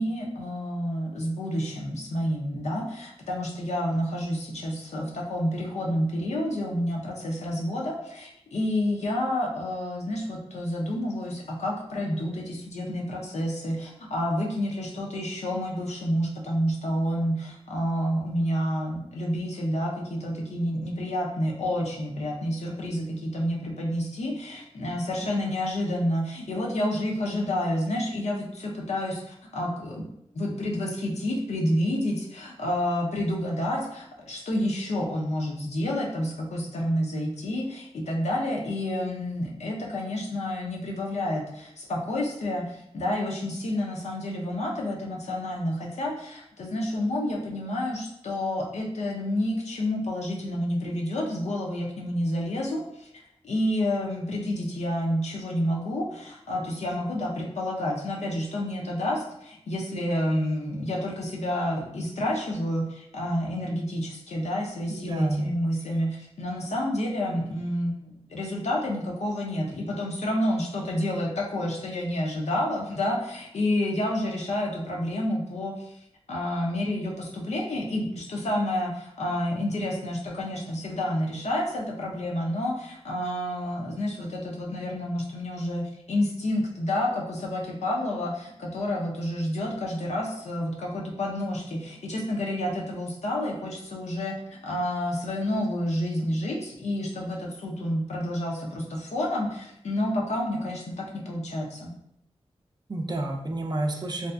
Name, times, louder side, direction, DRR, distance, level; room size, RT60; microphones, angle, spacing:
voice 1, 0.0-30.0 30.3-53.1 53.4-75.9 76.3-101.9, left 1 dB, 85° left, -2 dB, 0.5 m, -29 dB
voice 2, 25.2-25.5 64.9-65.6 102.9-104.3, right 2 dB, 40° right, 2 dB, 0.4 m, -30 dB
2.6 x 2.4 x 2.2 m, 0.77 s
cardioid pair, 55°, 11 cm